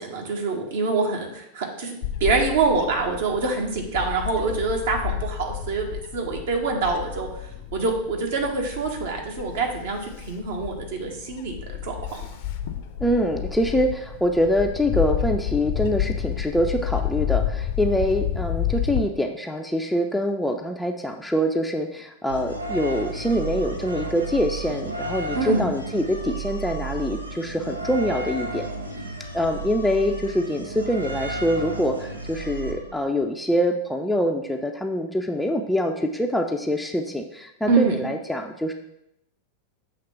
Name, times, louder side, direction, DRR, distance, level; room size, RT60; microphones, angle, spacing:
voice 1, 0.0-7.3 7.7-11.6 11.8-12.2 25.3-25.7 37.7-38.1, right 4 dB, 55° right, 1 dB, 1.3 m, -25 dB
Bird / Wind, 2.0-19.0, left 10 dB, 50° left, 0.6 m, -30 dB
voice 2, 13.0-28.7 29.3-38.7, equal, ahead, 3 dB, 0.5 m, -24 dB
sound 1, 22.3-33.2, right 2 dB, 85° right, 0.7 m, -33 dB
6.6 x 3.2 x 5.9 m, 0.81 s
figure-of-eight pair, 90°, 0 cm